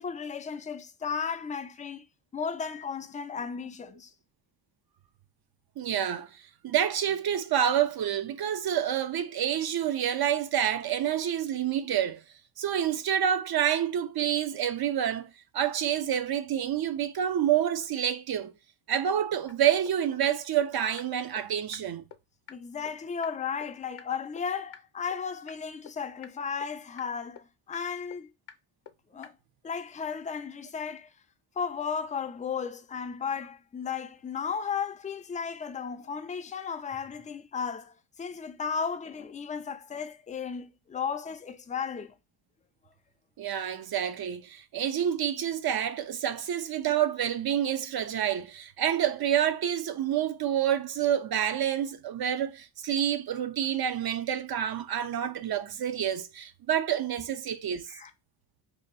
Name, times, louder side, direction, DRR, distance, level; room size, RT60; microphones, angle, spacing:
voice 1, 0.0-2.0 2.3-4.1 22.5-28.3 29.1-29.3 29.6-31.1 31.6-42.1 57.9-58.1, left 6 dB, 20° left, 0.3 m, -34 dB
voice 2, 5.8-6.3 6.6-12.2 12.6-18.5 18.9-22.1 43.4-57.9, right 10 dB, 55° right, 0.6 m, -28 dB
sound 1, 19.5-19.6 19.9-20.0 20.2-20.3 20.6-20.7 21.0-21.1 21.4-21.5 21.7-21.8 22.1-22.2 22.5-22.6 22.9-23.0 23.2-23.3 23.6-23.7 24.0-24.1 24.4-24.5 24.7-24.8 25.1-25.2 25.5-25.6 25.9-26.0 26.2-26.3 26.6-26.7 27.0-27.1 27.4-27.5 27.7-27.8 28.1-28.2 28.5-28.6 28.9-29.0 29.2-29.3, left 9 dB, 60° left, 0.7 m, -45 dB
2.7 x 2.6 x 4.0 m
cardioid pair, 85°, 46 cm